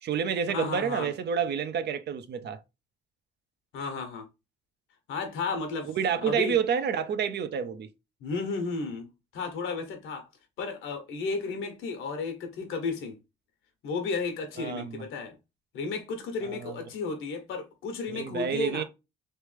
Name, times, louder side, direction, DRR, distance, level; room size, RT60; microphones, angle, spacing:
voice 1, 0.0-2.6 5.9-7.9 14.6-15.0 16.4-16.8 18.1-18.8, right 7 dB, 60° right, 0.6 m, -29 dB
voice 2, 0.5-1.1 3.7-4.3 5.1-6.5 8.2-10.3 10.6-13.2 13.8-15.4 15.7-18.8, left 4 dB, 85° left, 1.1 m, -33 dB
3.2 x 3.1 x 3.3 m
cardioid pair, 90°, 20 cm